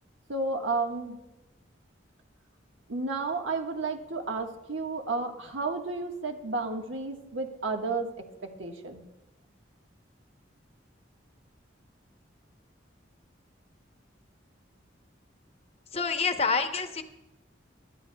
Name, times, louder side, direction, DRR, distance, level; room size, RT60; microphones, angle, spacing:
voice 1, 0.3-1.2 2.9-9.0, right 3 dB, 85° right, 3 dB, 1.4 m, -32 dB
voice 2, 15.9-17.0, left 4 dB, 30° left, 7 dB, 0.8 m, -27 dB
22.5 x 12.0 x 2.3 m, 1.0 s
head